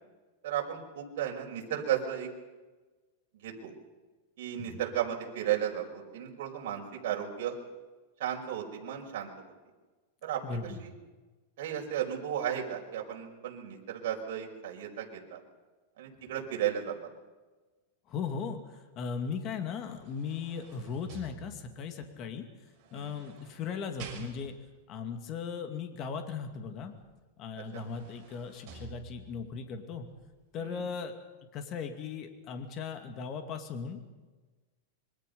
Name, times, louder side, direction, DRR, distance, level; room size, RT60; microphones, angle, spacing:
voice 1, 0.4-2.3 3.3-3.7 4.4-7.6 8.2-9.5 10.2-10.9 11.6-15.4 16.0-17.1 22.9-23.1 27.7-27.8 30.6-30.9, right 10 dB, 60° right, 0 dB, 5.3 m, -34 dB
voice 2, 10.4-10.8 18.1-22.4 22.9-24.5 24.9-26.9 27.4-30.0 30.5-31.1 31.5-34.1, left 6 dB, 35° left, 6 dB, 2.4 m, -38 dB
sound 1, 19.7-21.9 22.8-24.8 27.0-27.1 27.5-29.5 30.1-30.2, right 6 dB, 40° right, 6.6 m, -49 dB
26.5 x 23.5 x 5.5 m, 1.3 s
supercardioid pair, 150°, 0 cm